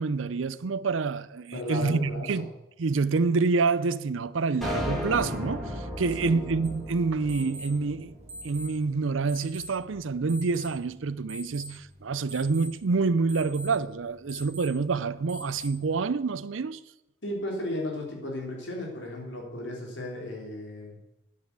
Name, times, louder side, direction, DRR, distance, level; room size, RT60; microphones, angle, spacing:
voice 1, 0.0-2.5 2.8-8.1 8.4-16.8, right 4 dB, 85° right, 0.6 m, -27 dB
voice 2, 1.5-2.3 6.3-6.4 17.2-20.9, left 1 dB, 70° left, 3.7 m, -34 dB
sound 1, 4.6-9.0, left 1 dB, ahead, 2.6 m, -35 dB
sound 2, 6.6-16.0, equal, 35° right, 1.7 m, -45 dB
9.7 x 9.6 x 8.2 m
head